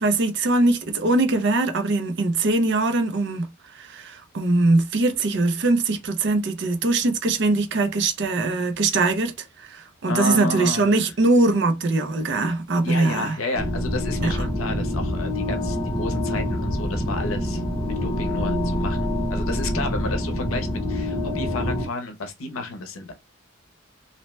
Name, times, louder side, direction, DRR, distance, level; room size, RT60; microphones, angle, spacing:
voice 1, 0.0-9.3 9.6-13.3 14.2-14.5, right 2 dB, 55° right, 0.5 m, -22 dB
voice 2, 10.1-11.1 12.8-23.1, left 3 dB, 85° left, 0.6 m, -32 dB
sound 1, 13.5-21.9, left 1 dB, 15° left, 0.7 m, -26 dB
2.7 x 2.1 x 3.1 m
head